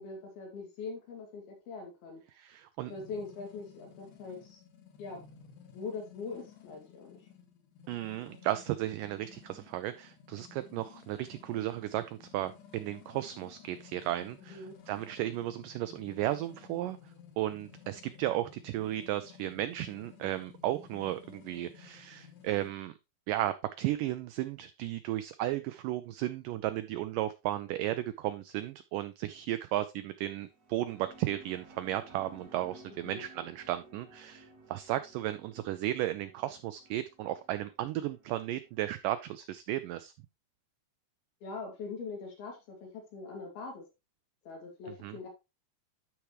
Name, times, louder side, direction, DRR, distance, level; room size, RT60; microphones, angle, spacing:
voice 1, 0.0-2.2 2.9-4.6 5.0-5.3 5.7-7.1 14.5-14.8 33.0-33.2 41.4-43.9 44.5-45.3, left 4 dB, 80° left, 4.1 m, -42 dB
voice 2, 2.4-2.9 7.9-17.0 17.4-23.0 23.3-40.1 45.0-45.2, right 14 dB, 85° right, 1.9 m, -34 dB
sound 1, 2.9-22.7, left 8 dB, 65° left, 2.5 m, -55 dB
sound 2, 30.4-39.1, right 2 dB, 50° right, 1.1 m, -56 dB
12.0 x 4.8 x 3.0 m
omnidirectional pair, 4.3 m